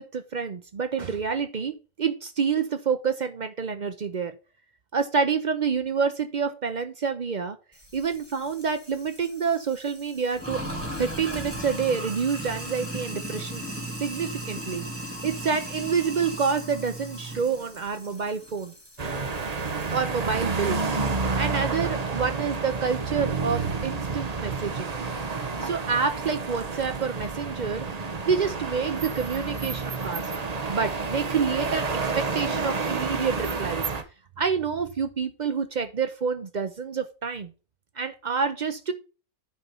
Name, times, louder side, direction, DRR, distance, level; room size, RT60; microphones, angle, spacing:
voice 1, 0.0-4.3 4.9-7.6 7.9-10.6 11.0-13.6 14.0-14.9 15.2-18.7 19.9-20.8 21.4-24.9 25.6-30.3 30.7-33.9 34.4-37.5 38.0-38.9, right 6 dB, 60° right, 9 dB, 0.4 m, -28 dB
Sink (filling or washing), 7.8-20.1, right 1 dB, 10° right, 2.8 m, -37 dB
sound 1, 19.0-34.0, right 4 dB, 30° right, 0.8 m, -30 dB
9.9 x 4.2 x 5.3 m, 0.34 s
omnidirectional pair, 1.6 m